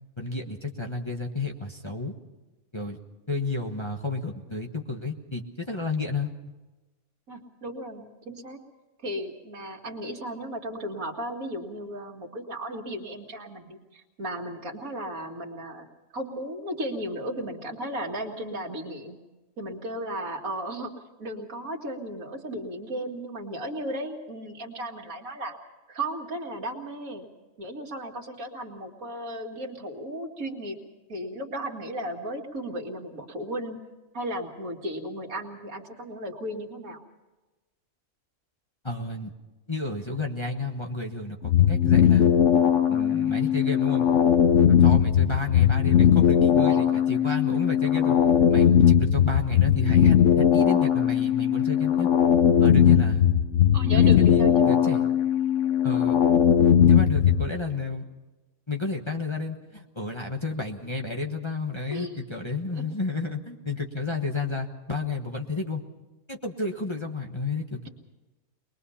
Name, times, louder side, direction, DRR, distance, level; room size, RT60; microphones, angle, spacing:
voice 1, 0.2-2.1 2.7-3.0 3.3-6.3 38.8-39.3 39.7-42.3 42.9-44.2 44.7-52.1 52.6-53.2 53.9-55.1 55.8-56.2 56.8-58.0 58.7-65.8 66.3-67.9, left 3 dB, 20° left, 1 dB, 1.2 m, -31 dB
voice 2, 7.3-8.6 9.0-15.9 16.1-19.2 19.6-20.9 21.2-25.6 25.9-27.3 27.6-30.8 31.1-33.8 34.1-37.0 46.7-46.8 53.7-54.7 61.9-62.2 62.7-62.9, right 1 dB, 75° right, 2 dB, 2.5 m, -35 dB
sound 1, 41.4-57.5, left 8 dB, 60° left, 1.1 m, -19 dB
23.0 x 21.5 x 5.7 m, 1.1 s
omnidirectional pair, 1.5 m